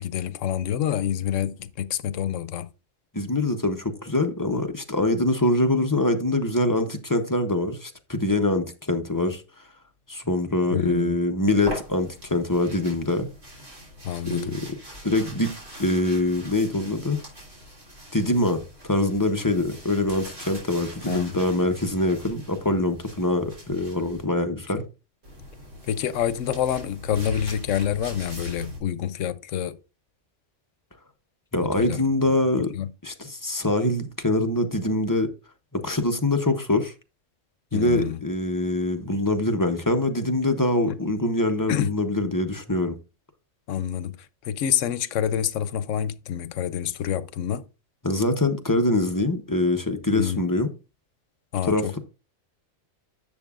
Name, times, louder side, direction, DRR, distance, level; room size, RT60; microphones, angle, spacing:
voice 1, 0.0-2.7 10.7-11.2 14.0-14.6 21.0-21.4 25.9-29.8 31.6-32.0 32.7-32.9 37.7-38.2 40.9-41.0 41.7-41.9 43.7-44.1 44.4-47.6 50.1-50.4 51.5-52.0, left 10 dB, 85° left, 1.0 m, -27 dB
voice 2, 3.1-9.4 10.1-13.3 14.2-14.7 15.0-15.5 15.8-17.2 18.1-24.8 31.5-32.7 33.0-35.3 35.7-36.9 37.7-43.0 48.0-50.7 51.6-52.0, left 2 dB, 20° left, 0.7 m, -24 dB
sound 1, 11.5-24.2 25.2-28.8, left 1 dB, 75° right, 4.0 m, -41 dB
10.5 x 7.1 x 2.4 m
omnidirectional pair, 1.3 m